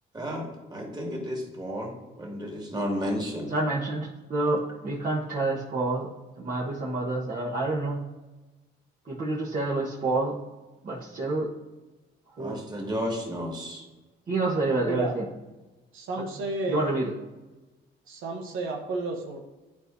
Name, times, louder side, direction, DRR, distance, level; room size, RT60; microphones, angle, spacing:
voice 1, 0.1-3.5 12.4-13.8, equal, 20° right, -1 dB, 2.2 m, -32 dB
voice 2, 3.5-6.1 6.4-8.0 9.0-10.4 10.8-11.5 12.4-12.6 14.3-15.2 16.7-17.1, right 2 dB, 45° right, -6 dB, 1.3 m, -28 dB
voice 3, 14.9-15.2 15.9-17.0 18.1-19.4, right 3 dB, 85° right, 1 dB, 1.0 m, -32 dB
10.5 x 4.7 x 2.7 m, 1.2 s
cardioid pair, 90°, 20 cm